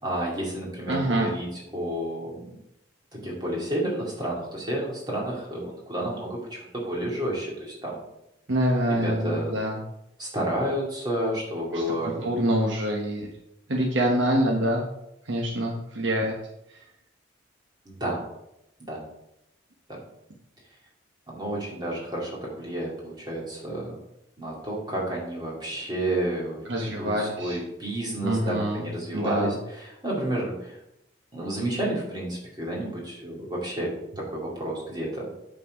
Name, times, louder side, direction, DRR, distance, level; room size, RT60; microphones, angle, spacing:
voice 1, 0.0-2.6 3.1-8.0 8.9-9.5 10.2-12.3 17.9-18.2 18.8-19.0 19.9-20.0 21.3-24.0 24.4-30.8 31.3-35.3, right 1 dB, 20° right, -4 dB, 2.6 m, -31 dB
voice 2, 0.9-1.3 8.5-9.8 11.7-13.3 13.7-14.8 15.3-16.3 26.7-27.6 28.2-28.8 29.1-29.6, right 1 dB, 75° right, 0 dB, 1.1 m, -25 dB
8.7 x 4.4 x 5.4 m, 0.84 s
head